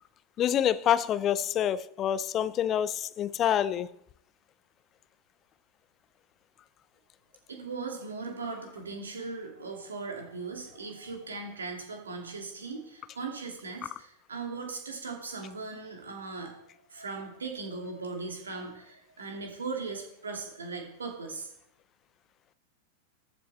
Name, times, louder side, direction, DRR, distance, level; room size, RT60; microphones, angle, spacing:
voice 1, 0.4-3.9, left 10 dB, 30° left, 0.4 m, -27 dB
voice 2, 7.5-16.6 16.9-21.5, right 4 dB, 70° right, 2.6 m, -38 dB
13.5 x 6.8 x 4.2 m
figure-of-eight pair, 90°, 0 cm